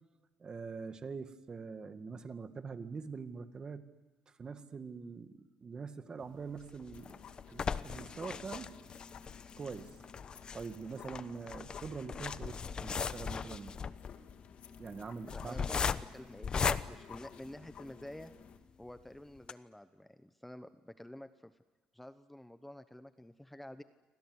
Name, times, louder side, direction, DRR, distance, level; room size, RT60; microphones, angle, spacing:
voice 1, 0.4-3.8 4.3-7.2 7.5-8.7 9.6-9.9 10.5-13.7 14.8-15.7 16.6-16.8, right 5 dB, 30° right, 9 dB, 2.0 m, -44 dB
sound 1, 6.6-18.0 18.5-18.6 18.9-19.0 19.4-19.5, left 6 dB, 35° left, 1.0 m, -38 dB
sound 2, 6.9-18.6, left 7 dB, 55° left, 2.3 m, -54 dB
voice 2, 15.3-15.9 16.1-18.3 18.8-21.6 21.9-23.8, left 1 dB, 5° left, 11 dB, 0.9 m, -50 dB
28.5 x 25.0 x 8.1 m, 1.3 s
cardioid pair, 110°, 3 cm